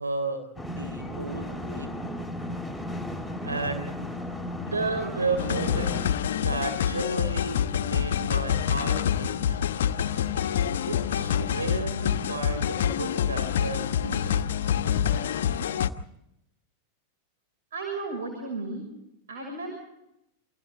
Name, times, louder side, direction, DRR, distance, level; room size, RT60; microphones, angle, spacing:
voice 1, 0.0-1.9 3.4-3.9 4.5-9.6 10.9-14.5, right 3 dB, 75° right, 6 dB, 3.7 m, -33 dB
sound 1, 0.6-6.1, left 1 dB, 5° right, 5.6 m, -35 dB
sound 2, 5.4-15.9, left 9 dB, 60° left, 1.2 m, -26 dB
voice 2, 17.7-18.8 19.3-19.7, right 3 dB, 60° right, 3 dB, 6.6 m, -34 dB
29.0 x 25.5 x 3.9 m, 0.84 s
figure-of-eight pair, 90°, 0 cm